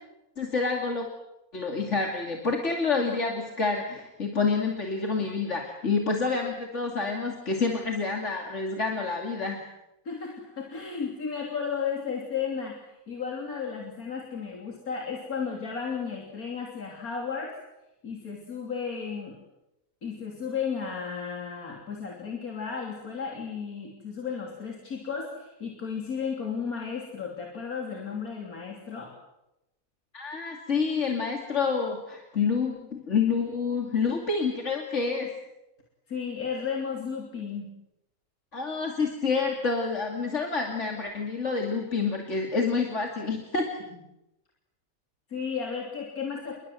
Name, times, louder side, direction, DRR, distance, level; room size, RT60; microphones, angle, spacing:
voice 1, 0.4-1.1 1.5-9.6 30.1-35.3 38.5-43.8, left 4 dB, 55° left, 1 dB, 2.9 m, -28 dB
voice 2, 10.1-12.8 13.1-17.5 18.0-19.4 20.0-29.1 36.1-37.7 45.3-46.6, left 6 dB, 90° left, 0 dB, 3.7 m, -34 dB
29.5 x 22.0 x 7.8 m, 0.92 s
omnidirectional pair, 1.5 m